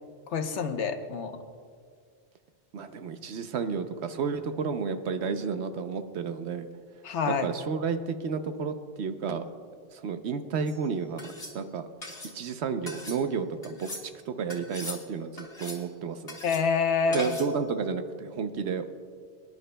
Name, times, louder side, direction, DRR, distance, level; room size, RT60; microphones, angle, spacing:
voice 1, 0.3-1.3 7.0-7.5 16.4-17.3, left 5 dB, 85° left, 7 dB, 1.1 m, -27 dB
voice 2, 2.7-6.7 7.3-9.4 9.9-11.9 12.3-13.9 14.3-16.4 17.1-18.8, right 5 dB, 75° right, 9 dB, 1.0 m, -31 dB
sound 1, 10.7-10.8 11.2-11.5 12.0-12.3 12.9-13.2 13.6-14.0 14.5-15.0 15.4-15.9 16.3-16.6 17.1-17.5, left 1 dB, 35° left, 2.6 m, -40 dB
24.0 x 11.0 x 2.2 m, 2.1 s
omnidirectional pair, 1.2 m